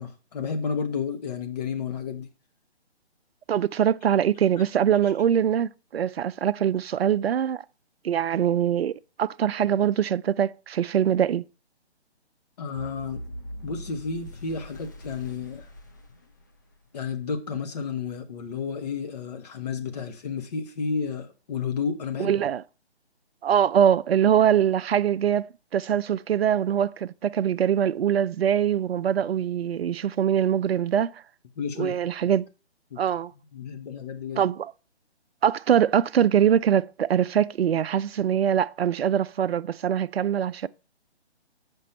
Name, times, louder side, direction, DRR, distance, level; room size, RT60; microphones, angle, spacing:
voice 1, 0.0-2.3 5.0-5.1 12.6-13.2 13.6-15.7 16.9-22.3 31.6-32.0 32.9-33.0 33.5-34.4, left 5 dB, 35° left, 1.2 m, -31 dB
voice 2, 3.5-7.6 8.0-8.9 9.2-11.4 22.2-22.6 23.4-31.1 31.8-32.5 33.0-33.3 34.4-34.7 35.4-40.7, right 9 dB, 65° right, 0.5 m, -23 dB
sound 1, 12.8-16.9, equal, 20° left, 0.4 m, -41 dB
7.6 x 5.3 x 4.5 m
figure-of-eight pair, 145°, 33 cm